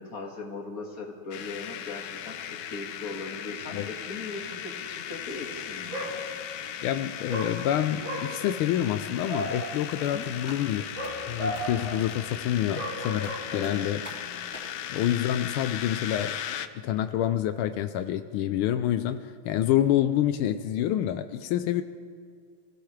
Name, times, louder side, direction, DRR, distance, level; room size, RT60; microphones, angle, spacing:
voice 1, 0.0-6.0 10.0-10.3 13.5-13.9, left 3 dB, 45° left, 1 dB, 2.2 m, -39 dB
sound 1, 1.3-16.7, left 10 dB, 70° left, 1.1 m, -37 dB
Dog, 5.4-5.6 5.9-6.6 7.3-14.0, equal, 70° right, 3.9 m, -36 dB
voice 2, 6.8-10.8 11.3-14.0 14.9-16.4 16.8-21.8, left 11 dB, 85° left, 9 dB, 1.5 m, -27 dB
sound 2, 10.0-16.2 16.5-16.6, equal, 5° left, 3.1 m, -49 dB
26.0 x 16.5 x 3.3 m, 2.1 s
omnidirectional pair, 2.3 m